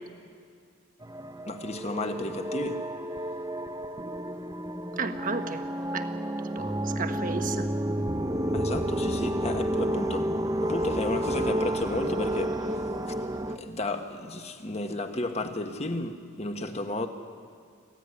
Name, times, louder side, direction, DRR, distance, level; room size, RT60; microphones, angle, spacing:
sound 1, 1.0-13.6, right 1 dB, 15° right, 0.8 m, -30 dB
voice 1, 1.4-2.9 8.5-10.3 10.6-13.2 13.5-17.1, left 2 dB, 30° left, 1.4 m, -33 dB
voice 2, 5.0-5.6 5.9-6.1 6.5-7.7, right 4 dB, 40° right, 1.3 m, -33 dB
26.5 x 15.5 x 9.7 m
head